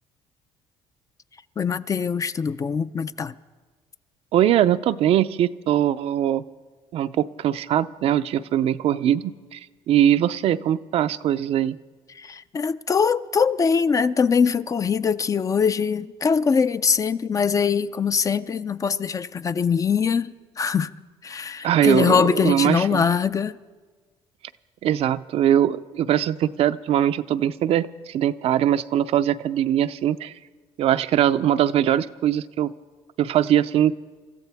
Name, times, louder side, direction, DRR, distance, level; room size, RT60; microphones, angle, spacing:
voice 1, 1.6-3.3 12.2-20.9 21.2-23.5, left 6 dB, 30° left, 0.4 m, -22 dB
voice 2, 4.3-6.4 6.9-9.6 9.9-11.8 21.6-23.1 24.8-30.3 30.8-32.7 33.2-33.9, right 11 dB, 60° right, 0.5 m, -21 dB
26.5 x 14.5 x 3.4 m
cardioid pair, 100°, 12 cm